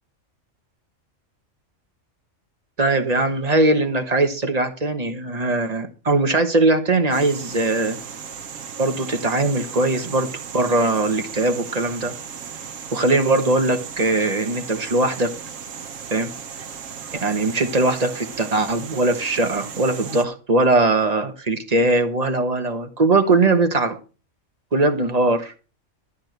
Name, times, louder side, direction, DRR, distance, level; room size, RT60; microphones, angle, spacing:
voice 1, 2.8-8.0 8.8-12.1 12.9-15.3 16.1-16.3 17.2-24.0 24.7-25.5, right 2 dB, 30° right, 1.3 m, -20 dB
sound 1, 7.1-20.3, right 7 dB, 80° right, 1.3 m, -36 dB
12.5 x 4.5 x 8.0 m
omnidirectional pair, 1.3 m